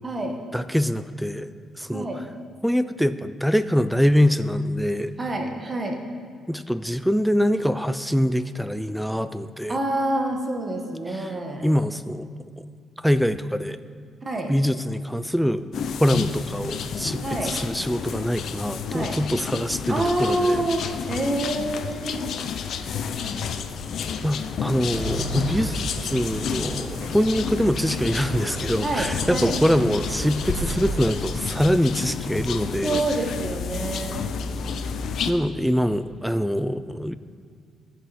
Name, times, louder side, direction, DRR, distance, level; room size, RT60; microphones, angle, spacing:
voice 1, 0.0-0.4 1.9-2.2 5.2-6.0 9.7-11.7 14.2-14.5 17.2-17.5 18.9-19.2 19.9-22.3 28.8-29.6 32.8-34.3, right 1 dB, 30° right, 2 dB, 1.3 m, -27 dB
voice 2, 0.5-1.5 1.8-2.1 2.6-5.1 6.5-9.8 11.6-12.3 13.0-13.8 14.5-15.6 16.0-20.6 24.2-33.0 35.3-37.1, equal, ahead, 13 dB, 0.4 m, -24 dB
sound 1, 15.7-35.3, left 6 dB, 65° left, 0.5 m, -31 dB
sound 2, 24.9-31.1, right 1 dB, 85° right, 2.0 m, -33 dB
13.5 x 5.7 x 4.2 m, 2.2 s
cardioid pair, 90°, 0 cm